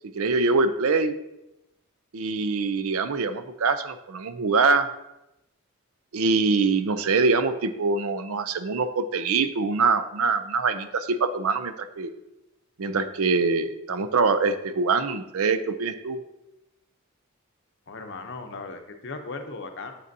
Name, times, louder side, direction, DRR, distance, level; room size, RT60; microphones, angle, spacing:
voice 1, 0.1-1.1 2.1-4.9 6.1-12.1 12.8-16.2, right 4 dB, 75° right, 11 dB, 0.5 m, -24 dB
voice 2, 17.9-20.0, left 3 dB, 50° left, 6 dB, 0.7 m, -37 dB
7.6 x 6.7 x 2.7 m, 0.90 s
head